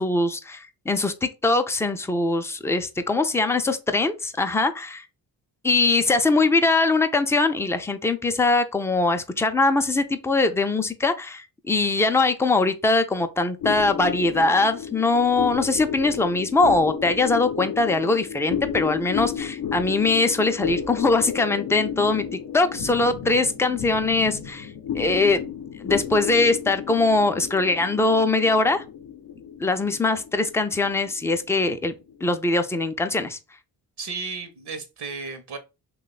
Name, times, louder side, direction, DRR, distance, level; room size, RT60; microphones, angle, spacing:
voice 1, 0.0-5.1 5.6-24.7 24.9-25.4 25.8-28.8 29.6-31.9 32.2-33.4, left 3 dB, 5° left, 0.4 m, -22 dB
sound 1, 13.6-32.4, left 7 dB, 55° left, 0.6 m, -33 dB
voice 2, 34.0-35.6, right 4 dB, 60° right, 0.8 m, -34 dB
3.0 x 2.3 x 4.0 m
cardioid pair, 65°, 45 cm